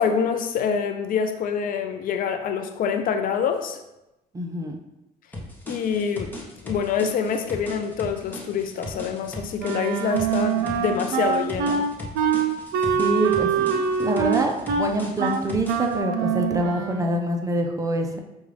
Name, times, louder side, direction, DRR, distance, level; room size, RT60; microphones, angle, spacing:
voice 1, 0.0-3.8 5.7-6.3 6.6-11.9, left 6 dB, 55° left, 7 dB, 0.4 m, -26 dB
voice 2, 4.3-4.8 12.9-18.2, right 1 dB, 20° right, 3 dB, 0.5 m, -26 dB
sound 1, 5.3-16.0, left 1 dB, 10° left, 0.9 m, -38 dB
Wind instrument woodwind instrument, 9.6-17.2, right 6 dB, 80° right, 0.5 m, -24 dB
5.2 x 2.4 x 3.2 m, 0.92 s
cardioid pair, 110°, 17 cm